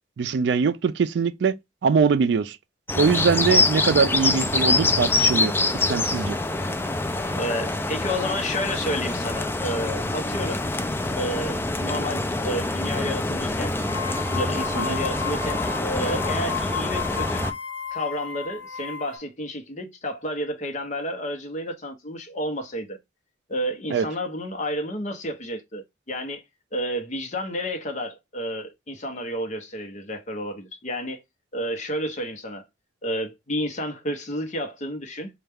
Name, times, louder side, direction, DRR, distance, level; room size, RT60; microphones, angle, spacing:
voice 1, 0.2-1.5 1.8-2.6 2.9-5.5 5.9-6.4 14.8-15.0 23.9-24.1, right 5 dB, 65° right, 0.3 m, -22 dB
sound 1, 2.9-17.5, left 2 dB, 10° left, 0.3 m, -25 dB
voice 2, 7.3-10.6 11.1-13.8 14.1-15.6 15.9-17.4 17.9-23.0 23.5-26.4 26.7-31.2 31.5-32.6 33.0-35.3, equal, 40° left, 0.8 m, -31 dB
sound 2, 12.8-13.2 13.6-19.2, left 5 dB, 80° left, 0.9 m, -33 dB
4.3 x 2.3 x 3.4 m
head